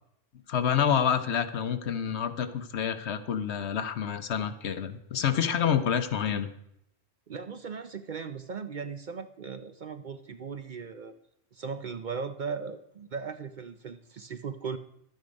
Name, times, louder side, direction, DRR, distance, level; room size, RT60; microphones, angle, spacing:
voice 1, 0.5-6.5, left 8 dB, 70° left, 10 dB, 1.1 m, -28 dB
voice 2, 7.3-11.1 11.5-14.8, right 5 dB, 50° right, 9 dB, 0.6 m, -38 dB
12.0 x 9.2 x 5.2 m, 0.75 s
omnidirectional pair, 1.2 m